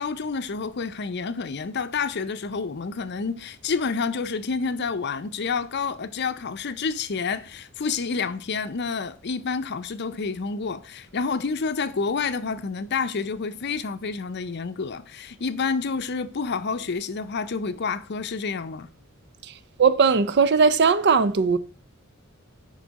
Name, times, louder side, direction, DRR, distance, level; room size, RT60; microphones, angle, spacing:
voice 1, 0.0-18.9, left 5 dB, 50° left, 0.6 m, -29 dB
voice 2, 19.8-21.6, right 5 dB, 55° right, 0.5 m, -18 dB
9.8 x 5.4 x 4.1 m
head